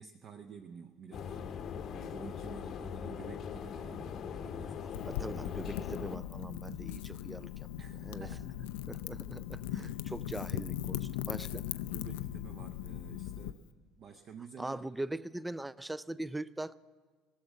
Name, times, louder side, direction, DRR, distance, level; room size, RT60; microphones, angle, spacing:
voice 1, 0.0-1.6 1.9-4.9 7.8-8.6 9.1-9.2 9.7-10.2 11.5-13.7 14.0-14.8, right 6 dB, 45° right, 0.7 m, -50 dB
sound 1, 1.1-6.2, left 7 dB, 40° left, 0.8 m, -41 dB
Wind / Fire, 4.9-13.5, left 12 dB, 65° left, 0.4 m, -39 dB
voice 2, 5.1-7.7 8.0-8.3 8.9-11.5 14.6-16.7, right 1 dB, 5° right, 0.3 m, -41 dB
19.0 x 7.1 x 9.4 m
figure-of-eight pair, 65°, 0 cm